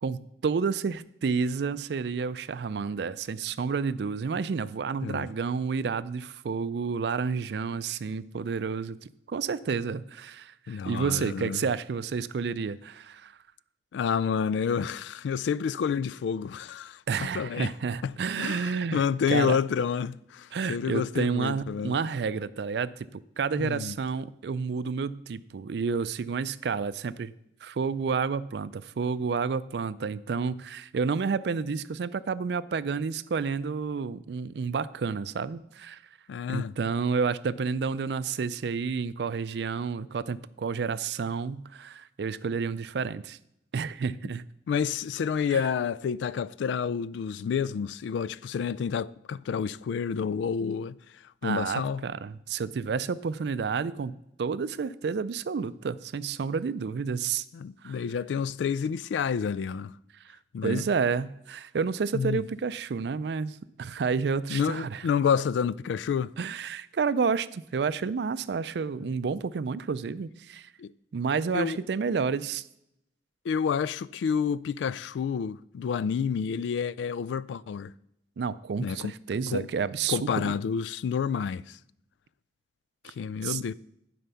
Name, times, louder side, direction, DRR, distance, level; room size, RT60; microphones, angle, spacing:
voice 1, 0.0-9.0 9.3-13.3 17.1-19.0 19.3-19.6 20.5-27.3 27.6-36.0 36.5-43.4 43.7-44.4 45.5-45.6 51.4-57.4 57.8-58.0 60.6-65.0 66.4-70.7 71.1-72.6 78.4-80.4 83.4-83.6, right 5 dB, 70° right, 0.4 m, -30 dB
voice 2, 10.7-11.6 13.9-17.7 18.0-18.1 18.4-22.0 23.6-24.0 36.3-36.7 44.7-51.0 51.4-52.0 57.5-59.9 60.5-60.8 62.1-62.4 64.5-66.3 70.8-70.9 71.5-71.8 73.4-77.9 78.8-79.1 79.5-79.7 80.1-81.8 83.0-83.7, left 7 dB, 90° left, 0.3 m, -29 dB
11.0 x 5.0 x 5.7 m
head